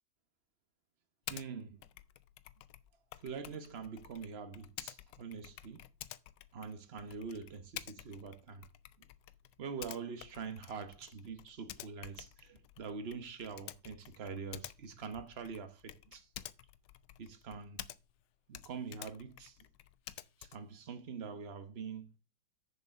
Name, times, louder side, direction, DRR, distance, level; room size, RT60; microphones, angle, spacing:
Typing, 1.3-1.5 1.8-18.2 18.5-20.7, left 14 dB, 90° left, 1.3 m, -51 dB
voice 1, 1.3-1.8 3.2-5.8 6.5-8.6 9.6-16.3 17.2-17.9 18.5-19.6 20.4-22.1, right 5 dB, 40° right, 1.1 m, -44 dB
6.9 x 5.6 x 5.7 m
omnidirectional pair, 1.9 m